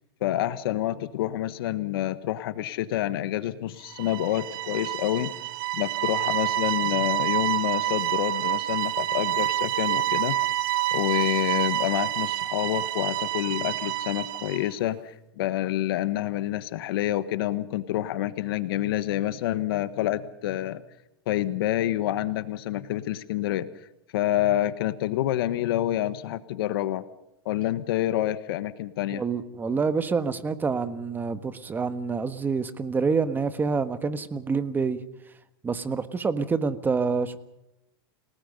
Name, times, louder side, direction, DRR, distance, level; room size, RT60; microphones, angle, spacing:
voice 1, 0.2-5.3 5.7-10.4 10.9-20.8 21.3-23.7 24.1-27.0 27.4-29.2, left 13 dB, 70° left, 13 dB, 1.3 m, -28 dB
sound 1, 3.9-14.7, right 14 dB, 60° right, 1.8 m, -28 dB
voice 2, 29.1-35.0 35.6-37.4, right 5 dB, 15° right, 11 dB, 1.5 m, -27 dB
29.5 x 18.5 x 5.5 m, 0.88 s
supercardioid pair, 130°, 13 cm